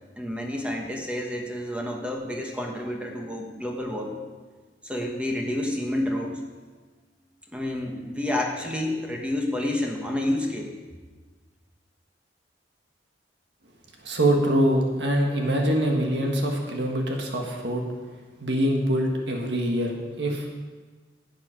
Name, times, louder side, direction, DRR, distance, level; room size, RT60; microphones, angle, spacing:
voice 1, 0.2-4.2 4.8-6.4 7.5-10.7, left 1 dB, 5° right, 1 dB, 1.3 m, -29 dB
voice 2, 14.0-17.8 18.4-20.5, right 1 dB, 70° right, 1 dB, 1.6 m, -24 dB
11.5 x 8.3 x 5.1 m, 1.4 s
head